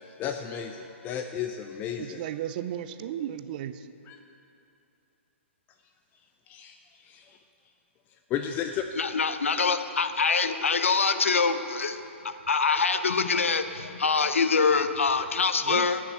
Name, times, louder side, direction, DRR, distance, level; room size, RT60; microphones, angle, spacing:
voice 1, 0.2-2.2 4.1-4.2 6.5-7.4 8.3-8.8, left 9 dB, 25° left, 6 dB, 0.5 m, -33 dB
voice 2, 2.0-3.9 15.6-15.9, right 11 dB, 45° right, 12 dB, 0.5 m, -34 dB
voice 3, 9.0-16.0, left 5 dB, 80° left, 10 dB, 0.7 m, -25 dB
12.5 x 6.2 x 7.8 m, 2.8 s
figure-of-eight pair, 125°, 7 cm